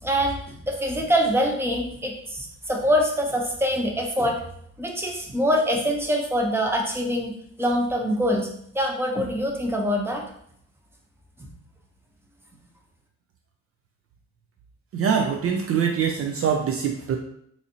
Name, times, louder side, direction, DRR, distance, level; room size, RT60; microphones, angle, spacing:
voice 1, 0.0-4.4 4.8-7.3 7.6-8.5 8.7-10.2, equal, 10° right, 0 dB, 0.8 m, -24 dB
voice 2, 14.9-17.2, right 7 dB, 50° right, 3 dB, 0.4 m, -24 dB
3.9 x 2.7 x 2.8 m, 0.68 s
cardioid pair, 90°, 30 cm